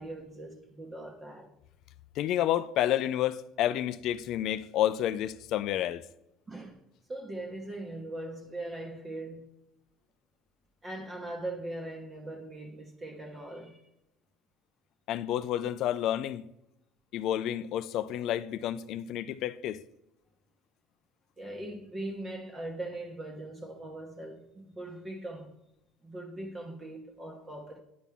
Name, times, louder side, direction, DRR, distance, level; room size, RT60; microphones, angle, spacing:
voice 1, 0.0-1.5 6.5-6.8 7.1-9.5 10.8-13.9 21.4-25.5 26.0-27.8, right 1 dB, 25° right, 1.0 m, -40 dB
voice 2, 2.2-6.0 15.1-16.4 17.1-19.8, left 12 dB, 65° left, 0.4 m, -30 dB
10.5 x 4.2 x 3.5 m
supercardioid pair, 100°, 0 cm